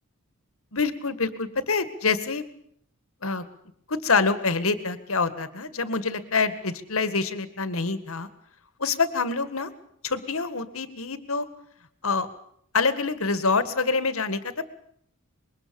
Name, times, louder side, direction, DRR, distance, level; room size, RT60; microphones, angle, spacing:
voice 1, 0.7-2.4 3.2-3.4 3.9-8.3 8.8-9.7 10.0-11.4 12.0-12.3 12.7-14.6, left 4 dB, 70° left, 12 dB, 1.9 m, -26 dB
25.5 x 22.0 x 7.1 m, 0.67 s
head